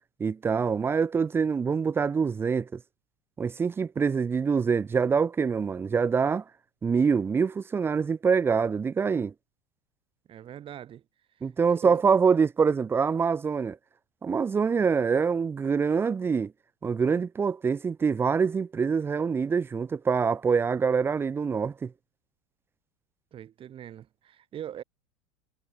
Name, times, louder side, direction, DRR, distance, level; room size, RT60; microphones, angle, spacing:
voice 1, 0.2-2.8 3.4-6.4 6.8-9.3 11.4-13.8 14.2-16.5 16.8-21.9, right 5 dB, 15° right, 0.3 m, -25 dB
voice 2, 10.3-11.0 11.4-12.0 23.3-24.8, right 10 dB, 30° right, 1.1 m, -42 dB
supercardioid pair, 115°, 17 cm